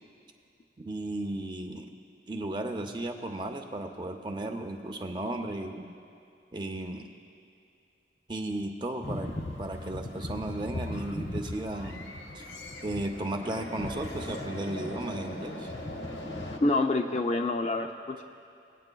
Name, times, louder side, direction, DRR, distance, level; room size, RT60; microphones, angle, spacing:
voice 1, 0.8-1.9 2.3-5.9 6.5-7.1 8.3-9.3 9.6-12.4 12.8-15.7, right 1 dB, 25° right, 4 dB, 0.5 m, -35 dB
sound 1, 9.0-16.6, left 1 dB, 80° left, 1.0 m, -38 dB
voice 2, 16.6-18.2, left 2 dB, 35° left, 4 dB, 0.4 m, -27 dB
20.0 x 8.8 x 2.3 m, 2.5 s
head